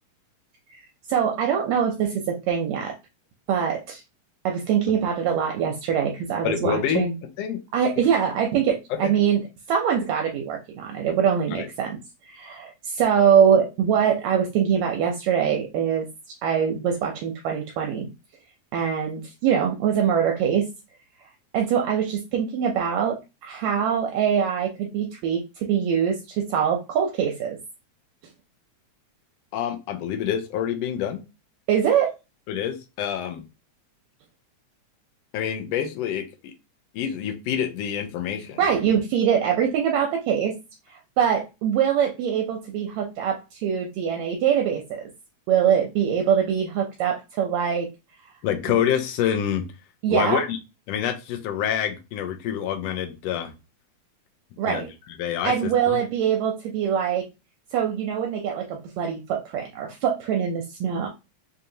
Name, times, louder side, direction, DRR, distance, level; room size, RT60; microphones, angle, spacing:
voice 1, 1.1-2.9 3.5-4.0 4.5-7.1 7.7-9.4 9.7-12.0 12.3-16.1 16.4-18.1 18.7-20.7 21.5-27.6 31.7-32.1 38.6-40.6 40.9-45.0 45.5-47.9 50.0-50.4 54.6-54.9 55.4-57.3 57.7-61.1, right 8 dB, 80° right, 2 dB, 1.8 m, -23 dB
voice 2, 6.4-7.0 7.4-7.6 8.0-8.1 8.9-9.1 11.5-11.7 29.5-31.2 32.5-33.5 35.3-36.5 36.9-38.7 48.4-49.6 50.1-50.6 50.9-53.5 54.6-54.9 55.2-56.0, left 9 dB, 80° left, 5 dB, 1.6 m, -27 dB
4.8 x 2.8 x 2.7 m, 0.27 s
omnidirectional pair, 3.3 m